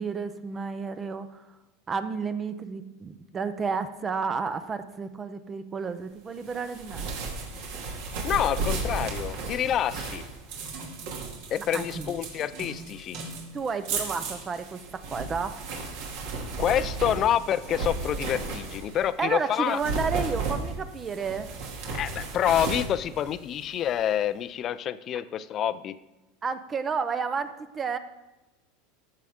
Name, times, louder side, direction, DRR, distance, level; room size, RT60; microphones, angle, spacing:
voice 1, 0.0-1.6 1.9-7.1 11.6-12.2 13.5-15.7 19.2-21.5 26.4-28.0, right 5 dB, 25° right, 11 dB, 0.6 m, -31 dB
sound 1, 6.4-19.1 19.6-23.9, right 3 dB, 70° right, 2.4 m, -34 dB
voice 2, 8.2-10.2 11.5-13.2 16.6-19.8 21.9-26.0, left 10 dB, 35° left, 15 dB, 0.5 m, -27 dB
14.0 x 6.4 x 3.6 m, 1.0 s
supercardioid pair, 125°, 0 cm